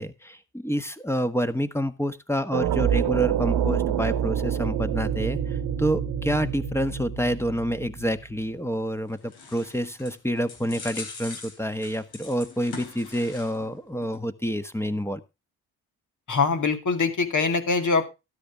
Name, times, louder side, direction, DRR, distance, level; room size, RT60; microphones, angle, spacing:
voice 1, 0.0-15.2, equal, 5° left, 10 dB, 1.4 m, -28 dB
sound 1, 2.5-8.4, right 9 dB, 80° right, 1.4 m, -27 dB
sound 2, 8.8-13.7 14.0-14.2, left 4 dB, 70° left, 4.3 m, -42 dB
voice 2, 16.3-18.1, left 4 dB, 50° left, 7 dB, 2.5 m, -23 dB
13.0 x 10.5 x 3.5 m, 0.27 s
supercardioid pair, 60°, 39 cm